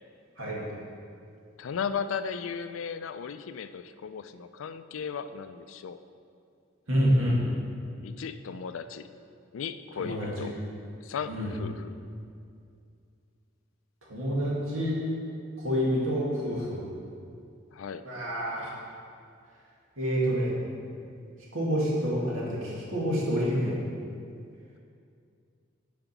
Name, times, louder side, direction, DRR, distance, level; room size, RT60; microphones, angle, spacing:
voice 1, 1.6-6.0 8.0-9.1 9.5-10.5 11.0-11.9 17.7-18.0, left 6 dB, 70° left, 11 dB, 0.4 m, -36 dB
voice 2, 6.9-7.4 10.0-10.5 11.3-11.5 14.1-15.0 15.6-16.8 18.0-18.7 20.0-20.5 21.5-23.7, equal, 75° right, -5 dB, 2.1 m, -27 dB
8.9 x 5.1 x 5.9 m, 2.4 s
head